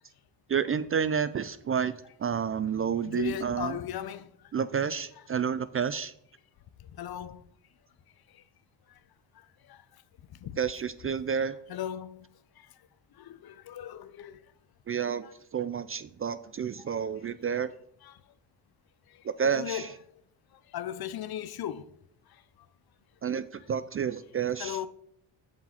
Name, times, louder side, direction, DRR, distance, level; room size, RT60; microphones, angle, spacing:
voice 1, 0.5-1.9 2.2-3.8 4.5-6.1 10.6-11.6 14.9-15.3 15.5-17.7 19.2-19.9 23.2-24.8, right 7 dB, 30° right, 0.4 m, -30 dB
voice 2, 3.1-4.3 6.8-7.4 8.3-8.4 9.4-9.8 10.4-10.6 11.7-12.3 12.6-12.7 13.2-14.4 18.0-18.1 19.1-19.9 20.7-21.9 24.6-24.9, left 10 dB, 50° left, 0.6 m, -37 dB
7.6 x 4.7 x 5.7 m
cardioid pair, 75°, 47 cm